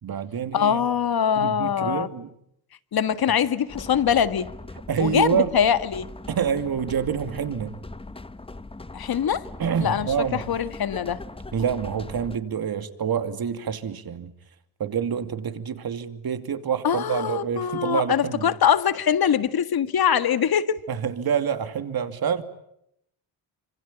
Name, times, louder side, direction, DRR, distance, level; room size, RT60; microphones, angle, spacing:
voice 1, 0.0-0.8 1.3-2.3 3.3-3.4 4.9-5.5 6.3-7.8 9.6-10.4 11.5-14.3 14.8-18.5 20.9-22.4, right 7 dB, 50° right, 2.8 m, -27 dB
voice 2, 0.5-2.1 2.9-4.5 5.0-6.1 8.9-9.5 9.8-11.2 16.8-20.8, left 8 dB, 50° left, 1.8 m, -23 dB
sound 1, 3.7-12.4, left 2 dB, 10° left, 1.2 m, -40 dB
26.5 x 25.5 x 8.9 m
cardioid pair, 85°, 47 cm